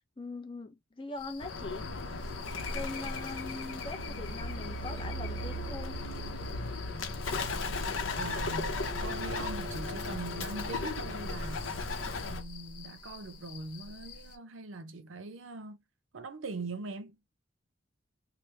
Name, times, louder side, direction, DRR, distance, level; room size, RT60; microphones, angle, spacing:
voice 1, 0.2-1.9 2.7-6.0, left 3 dB, 25° left, 0.5 m, -41 dB
sound 1, 1.2-14.4, left 2 dB, 45° left, 1.1 m, -47 dB
Bird, 1.4-12.4, left 3 dB, 90° left, 0.7 m, -36 dB
sound 2, 4.8-12.1, right 1 dB, 30° right, 0.6 m, -47 dB
voice 2, 8.2-11.7 12.2-15.8 16.1-17.2, right 3 dB, 90° right, 0.6 m, -42 dB
3.0 x 2.1 x 3.2 m
head